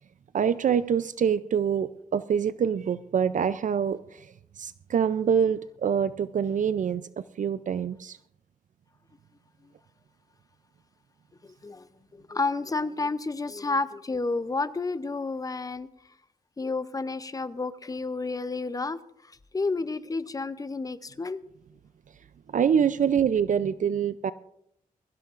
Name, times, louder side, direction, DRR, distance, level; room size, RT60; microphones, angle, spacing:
voice 1, 0.3-8.2 22.5-24.3, right 7 dB, 60° right, 14 dB, 0.4 m, -25 dB
voice 2, 12.3-15.9 16.6-19.0 19.5-21.4, left 3 dB, 25° left, 14 dB, 0.6 m, -30 dB
21.5 x 16.0 x 2.5 m, 0.74 s
wide cardioid pair, 110°, 15 cm